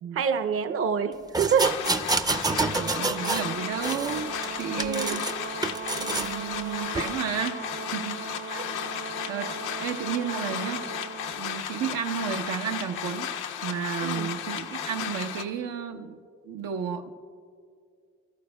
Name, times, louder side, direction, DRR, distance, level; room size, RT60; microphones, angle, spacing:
voice 1, 0.1-1.8 2.5-2.7 4.3-4.4 4.7-5.2 8.5-8.6 14.0-14.3, right 7 dB, 45° right, 8 dB, 0.7 m, -27 dB
sound 1, 1.3-3.5 3.8-5.3 5.6-6.3 6.9-7.1, right 3 dB, 15° right, 0.5 m, -28 dB
sound 2, 1.6-15.4, left 8 dB, 90° left, 0.8 m, -34 dB
Brass instrument, 2.4-11.4, right 7 dB, 70° right, 1.5 m, -40 dB
voice 2, 2.5-4.3 4.6-5.2 6.0-7.6 7.9-8.5 9.3-9.5 9.8-10.9 11.4-13.3 13.6-16.2 16.4-17.1, right 8 dB, 85° right, 4 dB, 0.9 m, -32 dB
23.0 x 13.5 x 2.2 m, 2.2 s
cardioid pair, 90°, 30 cm